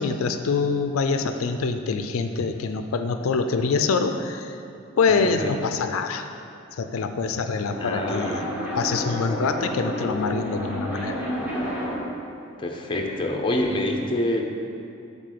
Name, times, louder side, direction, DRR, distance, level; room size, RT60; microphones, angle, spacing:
voice 1, 0.0-4.6 5.0-6.3 6.7-8.3 8.8-11.2, left 4 dB, 85° left, 8 dB, 0.4 m, -25 dB
sound 1, 7.4-12.2, equal, 10° right, 1.2 m, -31 dB
voice 2, 7.8-8.5 12.6-14.5, left 1 dB, 25° left, 2 dB, 0.6 m, -26 dB
7.7 x 3.7 x 6.6 m, 2.6 s
head